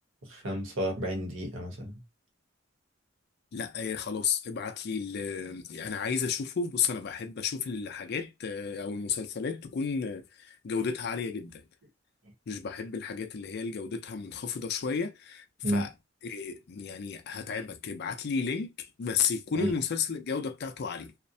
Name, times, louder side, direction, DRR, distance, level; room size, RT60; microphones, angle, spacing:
voice 1, 0.2-2.0 15.6-15.9 19.5-19.7, right 1 dB, 75° right, 0.9 m, -31 dB
voice 2, 3.5-11.6 12.5-15.9 16.2-21.1, left 6 dB, 55° left, 0.4 m, -33 dB
2.4 x 2.0 x 2.6 m
head